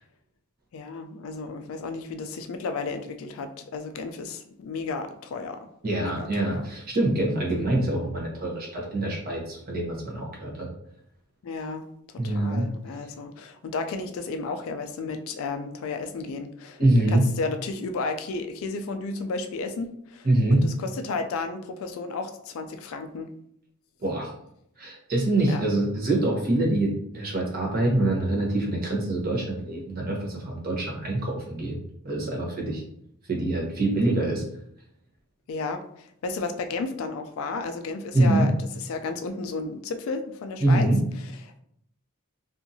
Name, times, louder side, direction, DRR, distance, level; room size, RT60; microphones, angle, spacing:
voice 1, 0.7-5.7 6.0-6.7 7.5-7.7 11.4-16.8 17.1-23.3 25.5-25.6 35.5-40.9 41.2-41.6, left 3 dB, 65° left, 8 dB, 0.3 m, -33 dB
voice 2, 5.8-10.7 12.2-12.7 16.8-17.3 20.2-20.7 24.0-24.3 24.8-31.8 32.0-32.8 33.3-34.4 38.1-38.5 40.6-41.0, right 1 dB, 40° right, -2 dB, 0.8 m, -25 dB
2.7 x 2.4 x 2.6 m, 0.72 s
head